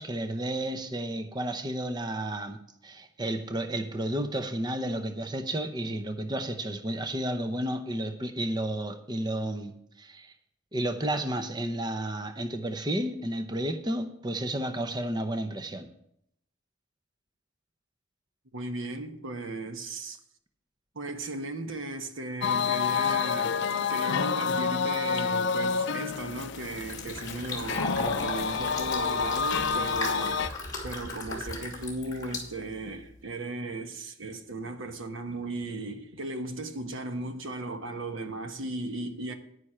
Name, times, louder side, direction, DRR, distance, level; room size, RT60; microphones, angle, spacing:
voice 1, 0.0-2.6 2.8-10.3 10.7-15.9, right 1 dB, 20° right, 0.7 m, -32 dB
voice 2, 18.5-20.2 20.9-30.5 30.8-39.3, right 2 dB, 75° right, 1.2 m, -36 dB
sound 1, 22.4-30.5, left 6 dB, 60° left, 0.4 m, -28 dB
Fill (with liquid), 26.1-33.2, left 2 dB, 20° left, 2.6 m, -37 dB
9.8 x 9.6 x 4.4 m
head